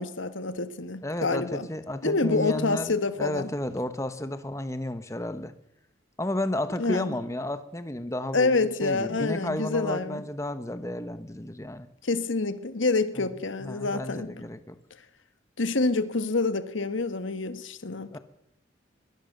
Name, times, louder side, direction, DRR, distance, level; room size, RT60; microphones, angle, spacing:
voice 1, 0.0-1.7 2.0-3.5 6.8-7.2 8.3-10.2 12.0-14.3 15.6-18.2, left 3 dB, 80° left, 1.5 m, -27 dB
voice 2, 1.0-2.9 3.2-5.5 6.2-11.9 13.2-13.3 13.6-14.8 18.1-18.2, left 1 dB, 15° left, 1.1 m, -32 dB
22.5 x 17.5 x 6.7 m
head